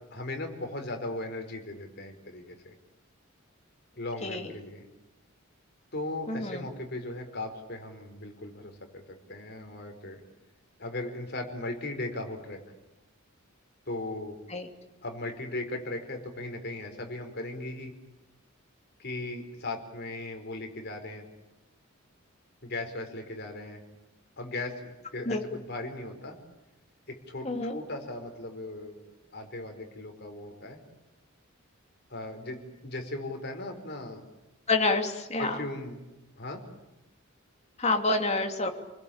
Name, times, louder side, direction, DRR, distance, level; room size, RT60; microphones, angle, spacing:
voice 1, 0.1-2.7 3.9-4.9 5.9-9.0 9.3-10.2 10.8-12.6 13.9-14.4 15.0-17.9 19.0-21.2 22.6-23.8 24.4-26.4 27.1-29.0 29.3-30.8 32.1-34.2 35.4-36.0 36.4-36.6, left 2 dB, 50° left, 4 dB, 5.0 m, -37 dB
voice 2, 6.3-6.6 14.5-14.7 25.3-25.4 27.4-27.8 34.7-35.6 37.8-38.7, left 3 dB, 30° left, 4 dB, 2.9 m, -28 dB
30.0 x 20.5 x 8.8 m, 1.0 s
head